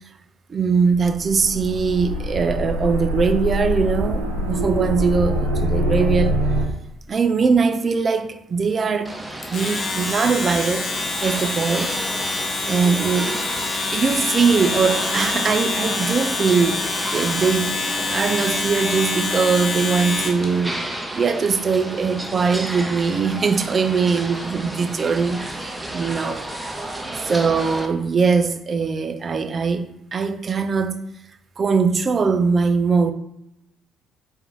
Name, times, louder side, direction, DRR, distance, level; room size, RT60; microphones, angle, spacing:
voice 1, 0.5-6.4 7.1-9.1 9.5-10.8 11.2-11.9 12.7-13.4 13.9-17.8 18.1-20.8 21.1-26.4 27.2-31.0 31.6-33.1, right 5 dB, 40° right, 0.4 m, -21 dB
sound 1, 0.9-6.6, equal, 85° right, 0.8 m, -24 dB
sound 2, 9.1-27.9, right 1 dB, 15° right, 0.7 m, -32 dB
Domestic sounds home sounds, 9.4-20.5, left 3 dB, 40° left, 1.0 m, -26 dB
4.4 x 2.5 x 3.9 m
hypercardioid pair, 50°, 0 cm